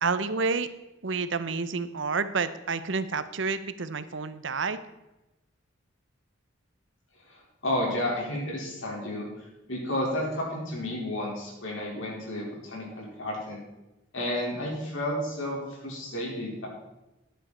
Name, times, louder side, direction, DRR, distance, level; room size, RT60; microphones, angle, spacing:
voice 1, 0.0-0.7 1.0-4.8, right 4 dB, 70° right, 12 dB, 0.8 m, -29 dB
voice 2, 7.3-9.3 9.7-13.6 14.1-16.7, left 1 dB, 85° left, -2 dB, 4.8 m, -32 dB
14.0 x 10.5 x 4.4 m, 1.0 s
head